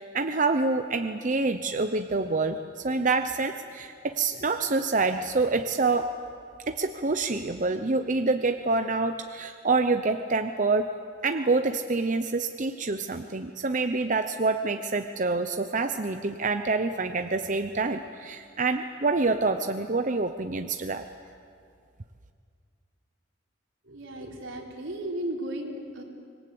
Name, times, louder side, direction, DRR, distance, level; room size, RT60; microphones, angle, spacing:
voice 1, 0.0-6.1 6.7-10.9 11.2-21.0, right 3 dB, 40° right, 7 dB, 0.8 m, -27 dB
voice 2, 23.8-26.0, right 1 dB, 85° right, 0 dB, 4.0 m, -35 dB
25.5 x 21.0 x 8.5 m, 2.3 s
head